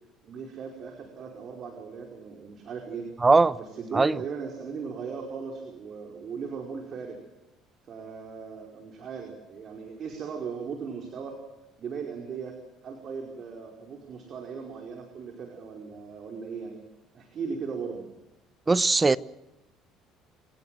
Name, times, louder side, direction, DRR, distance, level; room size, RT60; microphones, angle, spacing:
voice 1, 0.2-3.0 3.6-7.2 7.9-11.4 11.8-12.6 12.8-16.8 17.1-18.1, right 5 dB, 50° right, 5.1 m, -38 dB
voice 2, 3.2-3.6 3.9-4.2 18.7-19.2, right 3 dB, 20° right, 0.9 m, -20 dB
26.5 x 18.0 x 7.8 m
supercardioid pair, 80°, 0 cm